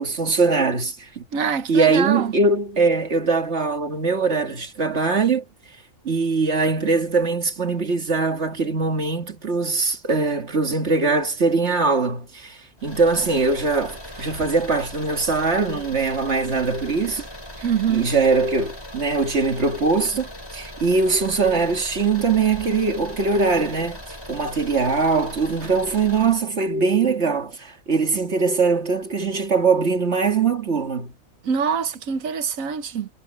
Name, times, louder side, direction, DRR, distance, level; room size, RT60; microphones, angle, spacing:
voice 1, 0.0-1.2 1.7-5.4 6.0-17.3 17.9-24.0 24.3-31.1, right 4 dB, 55° right, 2.2 m, -21 dB
voice 2, 1.3-2.3 17.6-18.1 31.4-33.1, right 7 dB, 85° right, 1.4 m, -24 dB
sound 1, 12.8-26.5, equal, 20° left, 6.0 m, -39 dB
omnidirectional pair, 1.4 m